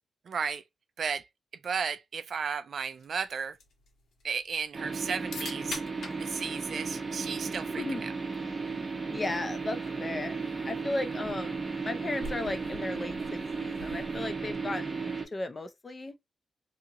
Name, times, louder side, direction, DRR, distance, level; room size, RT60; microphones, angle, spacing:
voice 1, 0.3-0.6 1.0-1.3 1.6-3.5 4.2-5.8 6.2-7.8, right 6 dB, 50° right, 0.3 m, -34 dB
sound 1, 2.9-14.8, left 2 dB, 85° left, 1.3 m, -48 dB
sound 2, 4.7-15.3, right 4 dB, 25° right, 0.7 m, -35 dB
voice 2, 9.1-16.2, left 2 dB, 25° left, 0.4 m, -36 dB
2.8 x 2.8 x 2.5 m
wide cardioid pair, 175°, 0 cm